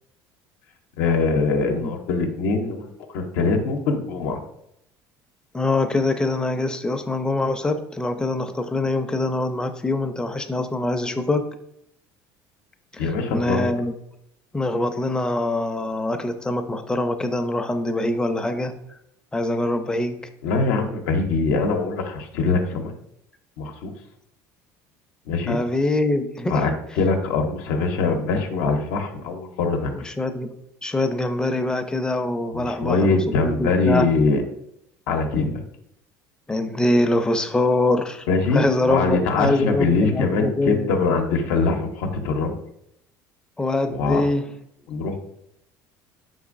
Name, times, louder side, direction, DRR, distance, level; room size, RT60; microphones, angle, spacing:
voice 1, 1.0-4.4 13.0-13.7 20.4-22.9 23.6-23.9 25.3-25.6 26.5-29.9 32.5-34.4 35.1-35.6 38.3-42.6 43.9-44.2 44.9-45.2, left 3 dB, 85° left, 4 dB, 0.6 m, -23 dB
voice 2, 5.5-11.5 12.9-13.9 14.5-18.8 19.3-20.2 25.5-26.6 30.0-30.5 30.8-34.1 36.5-38.3 38.5-40.9 43.6-44.4, left 2 dB, 10° left, 7 dB, 0.4 m, -24 dB
5.1 x 3.9 x 2.4 m, 0.77 s
cardioid pair, 125°, 8 cm